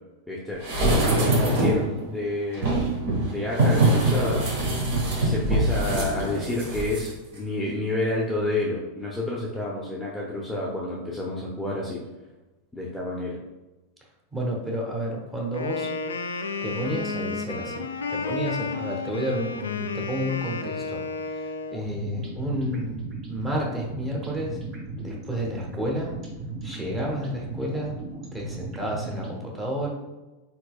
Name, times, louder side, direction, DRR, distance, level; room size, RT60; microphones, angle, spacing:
voice 1, 0.3-0.6 1.2-3.0 3.3-4.5 5.2-12.0 12.7-13.4, left 2 dB, 5° left, -5 dB, 0.7 m, -29 dB
sound 1, 0.6-1.9 2.5-7.1 7.4-7.5, right 1 dB, 50° right, 1.2 m, -23 dB
voice 2, 1.4-1.9 14.3-15.9 16.6-17.8 18.1-21.0 21.3-24.6 25.0-26.1 26.6-27.9 28.3-29.9, equal, 15° right, -2 dB, 1.1 m, -30 dB
Wind instrument woodwind instrument, 15.5-21.8, left 4 dB, 70° left, 0.4 m, -32 dB
sound 2, 21.7-29.4, right 3 dB, 30° right, 1.3 m, -37 dB
4.4 x 4.1 x 2.3 m, 1.1 s
figure-of-eight pair, 90°, 0 cm